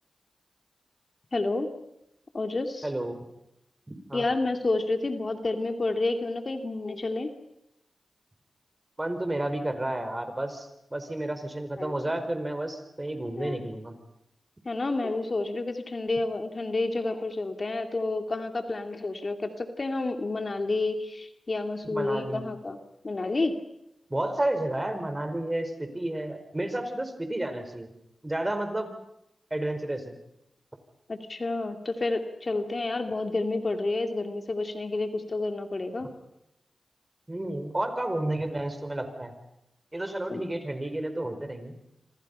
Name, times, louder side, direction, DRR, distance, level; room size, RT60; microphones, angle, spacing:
voice 1, 1.3-1.7 2.3-2.9 4.1-7.3 11.8-12.0 13.4-13.6 14.6-22.8 23.0-23.5 31.1-36.1 40.3-40.4, left 2 dB, 45° left, 6 dB, 2.4 m, -30 dB
voice 2, 2.8-3.3 3.9-4.3 9.0-13.9 21.9-22.5 24.1-27.9 28.2-28.9 29.5-30.1 37.3-39.3 39.9-41.7, right 1 dB, 20° right, 8 dB, 5.0 m, -31 dB
27.0 x 26.0 x 5.6 m, 0.84 s
cardioid pair, 50°, 0 cm